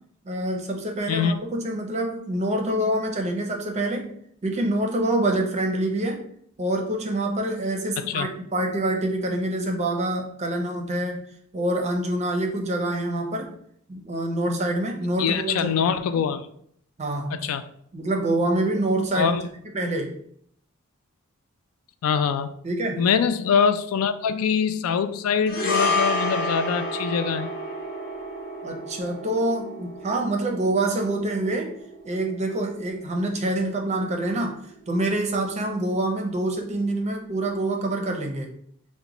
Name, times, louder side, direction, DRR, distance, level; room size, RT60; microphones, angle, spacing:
voice 1, 0.3-4.1 4.4-6.2 6.6-11.2 11.5-13.6 13.9-15.9 17.0-17.5 17.9-19.4 19.7-20.1 22.6-23.0 28.6-31.8 32.0-38.5, right 1 dB, 30° right, 2 dB, 0.5 m, -26 dB
voice 2, 15.2-16.4 17.3-17.6 19.1-19.4 22.0-22.5 23.0-27.5, left 6 dB, 75° left, 12 dB, 0.3 m, -23 dB
sound 1, 25.5-33.9 34.2-34.4, left 2 dB, 45° left, 1.0 m, -30 dB
4.9 x 2.1 x 2.9 m, 0.66 s
head